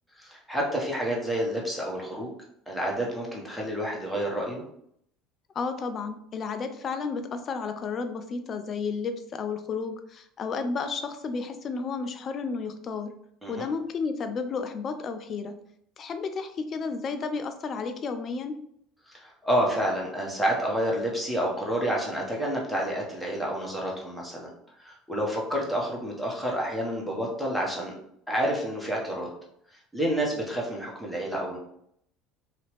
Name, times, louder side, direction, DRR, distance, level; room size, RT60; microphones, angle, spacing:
voice 1, 0.2-2.3 2.7-4.6 13.4-13.6 19.1-24.5 24.8-27.9 28.3-29.3 29.7-31.6, equal, ahead, -3 dB, 1.1 m, -29 dB
voice 2, 5.6-13.1 13.5-15.5 16.0-18.6, left 4 dB, 40° left, 8 dB, 0.4 m, -32 dB
2.8 x 2.4 x 3.3 m, 0.71 s
hypercardioid pair, 75°, 0 cm